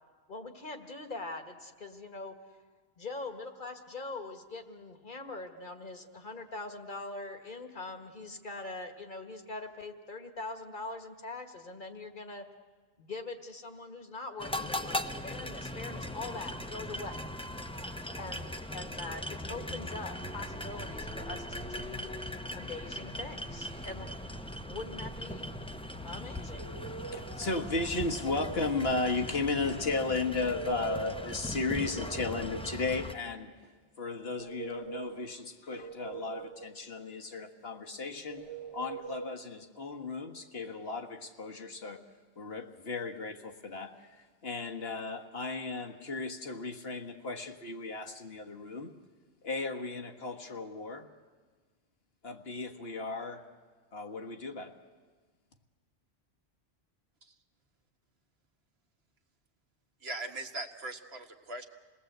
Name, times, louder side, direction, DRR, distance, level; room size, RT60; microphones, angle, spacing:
voice 1, 0.3-2.4 3.0-12.5 13.0-17.2 18.2-22.1 22.5-24.1 24.7-25.5 26.0-26.7, left 3 dB, 50° left, 6 dB, 1.8 m, -42 dB
sound 1, 14.4-33.1, left 1 dB, 5° left, 0.8 m, -39 dB
sound 2, 26.5-27.4 27.9-28.7 30.3-31.3 31.7-32.8 34.2-35.2 35.7-36.7 38.3-39.3, right 5 dB, 30° right, 0.8 m, -44 dB
voice 2, 27.1-33.7 34.0-38.5 38.7-42.0 42.4-48.9 49.4-51.1 52.2-53.4 53.9-54.7, left 3 dB, 70° left, 3 dB, 1.7 m, -35 dB
voice 3, 60.0-61.7, right 2 dB, 70° right, 5 dB, 1.7 m, -40 dB
28.0 x 19.0 x 8.0 m, 1.5 s
omnidirectional pair, 1.1 m